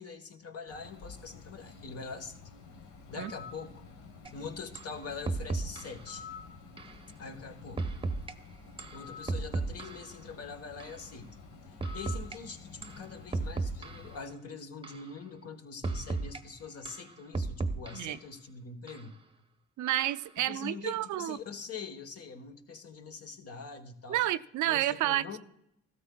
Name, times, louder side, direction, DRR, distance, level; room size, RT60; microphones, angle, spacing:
voice 1, 0.0-2.4 3.1-3.8 4.3-6.3 7.2-7.9 8.9-11.4 11.7-19.2 20.4-24.3 24.6-25.4, left 5 dB, 50° left, 6 dB, 1.3 m, -44 dB
Bird, 0.7-14.2, left 5 dB, 75° left, 1.5 m, -50 dB
sound 1, 4.3-4.4 4.8-4.9 5.3-6.0 6.8-7.0 7.8-8.3 8.8-10.2 10.8-11.0 11.8-12.4 12.8-13.0 13.3-14.2 14.8-15.1 15.8-16.4 16.9-18.2 18.9-19.0 19.9-20.3, right 3 dB, 15° right, 0.8 m, -35 dB
voice 2, 19.8-21.4 24.1-25.4, right 14 dB, 75° right, 12 dB, 0.5 m, -30 dB
15.0 x 13.0 x 2.3 m, 0.79 s
cardioid pair, 90°, 30 cm